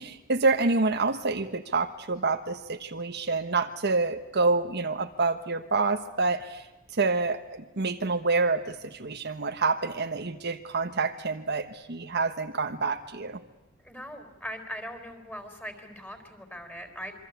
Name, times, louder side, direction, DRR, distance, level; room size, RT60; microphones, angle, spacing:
voice 1, 0.0-6.7 6.9-13.4, right 3 dB, 55° right, 7 dB, 1.3 m, -27 dB
voice 2, 13.8-17.1, equal, 10° left, 7 dB, 4.1 m, -40 dB
27.0 x 24.0 x 8.2 m, 1.0 s
head